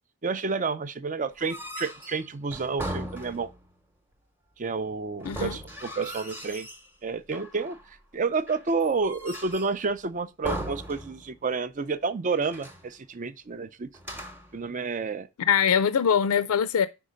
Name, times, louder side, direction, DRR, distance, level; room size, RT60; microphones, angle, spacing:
voice 1, 0.2-3.5 4.6-6.7 7.0-13.9 14.5-15.3, right 4 dB, 35° right, 0.5 m, -30 dB
sound 1, 1.3-3.7 5.2-6.9 7.3-7.9 8.5-9.9 10.4-11.5 11.8-11.9 12.4-12.9 13.9-14.6, right 1 dB, 10° right, 0.9 m, -38 dB
voice 2, 5.2-5.6 15.5-16.9, left 7 dB, 85° left, 0.4 m, -22 dB
5.4 x 4.6 x 5.0 m
head